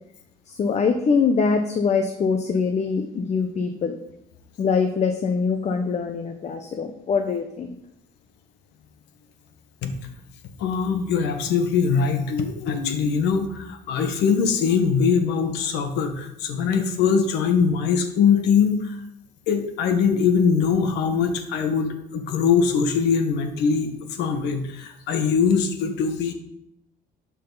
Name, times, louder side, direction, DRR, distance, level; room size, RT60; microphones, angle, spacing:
voice 1, 0.5-3.9 4.6-7.7, left 5 dB, 40° left, 6 dB, 1.0 m, -23 dB
voice 2, 10.6-18.8 19.5-23.9 24.2-26.3, left 6 dB, 85° left, 7 dB, 1.4 m, -22 dB
12.0 x 6.6 x 4.0 m, 0.80 s
cardioid pair, 110°, 17 cm